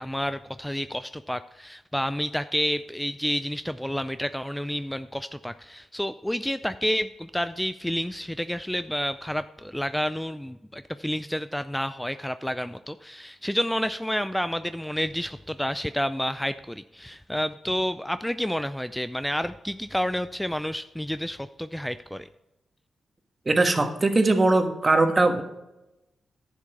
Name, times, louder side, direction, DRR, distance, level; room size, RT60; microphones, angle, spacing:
voice 1, 0.0-22.3, equal, 5° left, 12 dB, 0.4 m, -30 dB
voice 2, 23.4-25.4, right 2 dB, 40° right, 6 dB, 1.5 m, -20 dB
10.5 x 7.4 x 4.6 m, 0.94 s
supercardioid pair, 45°, 0 cm